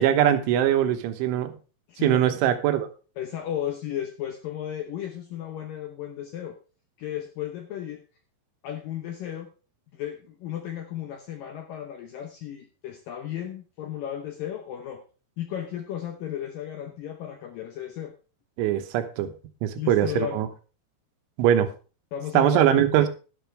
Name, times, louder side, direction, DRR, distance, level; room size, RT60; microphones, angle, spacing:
voice 1, 0.0-1.5 2.0-2.9 18.6-19.3 19.6-20.5 21.4-21.7 22.4-23.1, right 11 dB, 90° right, 9 dB, 3.5 m, -21 dB
voice 2, 1.9-2.4 3.2-6.6 7.0-8.0 8.6-9.5 9.9-15.0 15.4-18.1 19.8-20.4 22.1-22.8, left 10 dB, 80° left, 6 dB, 2.0 m, -34 dB
12.0 x 11.5 x 3.3 m, 0.34 s
omnidirectional pair, 5.3 m